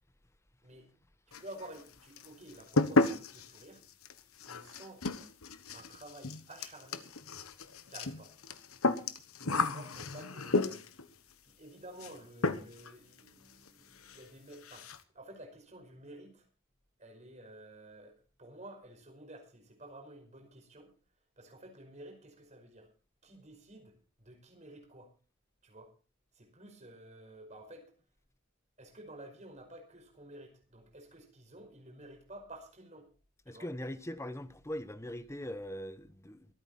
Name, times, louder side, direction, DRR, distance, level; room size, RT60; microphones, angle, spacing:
sound 1, 1.3-1.9 2.2-11.1 12.0-12.2 12.4-12.9 13.2-13.3 13.7-13.8 14.0-14.2 14.5-15.0, left 3 dB, 80° left, 1.3 m, -33 dB
voice 1, 1.3-3.8 4.5-5.0 5.7-7.1 7.9-8.3 8.8-10.9 11.5-14.9 15.1-16.5 17.0-20.9 21.4-22.9 23.2-25.1 25.6-25.9 26.3-27.9 28.8-33.1 33.5-33.7, right 1 dB, 35° right, 5.3 m, -52 dB
voice 2, 33.5-36.5, left 1 dB, 15° left, 1.0 m, -41 dB
24.0 x 9.1 x 4.3 m
head